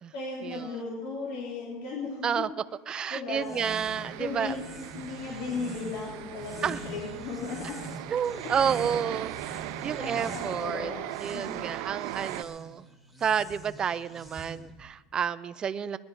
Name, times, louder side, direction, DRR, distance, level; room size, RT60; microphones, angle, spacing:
voice 1, 0.1-2.4 3.1-3.7 4.2-4.7 4.9-7.9 8.4-8.5 10.0-11.1 11.3-11.5, left 4 dB, 65° left, -4 dB, 3.4 m, -36 dB
voice 2, 2.9-4.6 6.6-6.8 8.1-9.3 9.8-10.9 11.2-12.9 13.2-16.0, right 7 dB, 25° right, 14 dB, 0.5 m, -30 dB
sound 1, 3.3-14.9, right 1 dB, ahead, 2.1 m, -45 dB
sound 2, 3.7-12.4, right 14 dB, 65° right, 0.7 m, -39 dB
19.0 x 11.5 x 4.9 m, 1.3 s
supercardioid pair, 145°, 3 cm